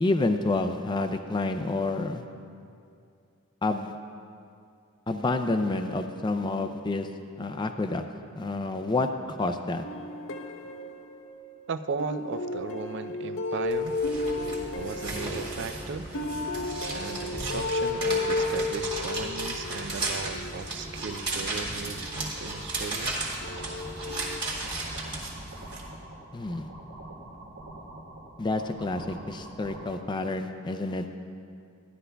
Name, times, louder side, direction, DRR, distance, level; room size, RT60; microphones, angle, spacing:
voice 1, 0.0-2.2 3.6-3.9 5.1-7.1 7.4-8.0 8.4-9.8 26.3-26.7 28.4-31.1, left 2 dB, 20° left, 6 dB, 0.4 m, -28 dB
sound 1, 9.8-11.6 12.0-22.9 23.4-24.4, left 2 dB, 65° left, 0.6 m, -33 dB
voice 2, 11.7-14.0 14.7-16.1 16.9-23.3, right 5 dB, 55° right, 10 dB, 0.4 m, -36 dB
sound 2, 13.7-25.8, right 2 dB, 20° right, 1.9 m, -35 dB
sound 3, 23.2-29.9, right 1 dB, 85° right, 2.0 m, -45 dB
15.5 x 11.0 x 2.3 m, 2.4 s
head